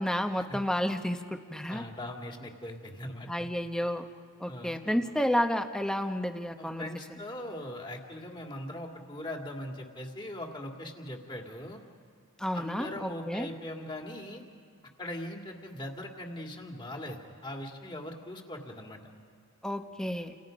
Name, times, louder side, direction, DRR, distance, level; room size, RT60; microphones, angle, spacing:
voice 1, 0.0-1.8 3.3-4.0 4.4-6.8 7.1-7.2 12.4-13.5 19.6-20.3, equal, 5° left, 6 dB, 1.0 m, -31 dB
voice 2, 1.7-3.5 4.5-5.0 6.6-11.8 12.5-14.4 15.0-19.0, left 1 dB, 20° left, 1 dB, 2.4 m, -40 dB
29.0 x 29.0 x 5.3 m, 2.3 s
head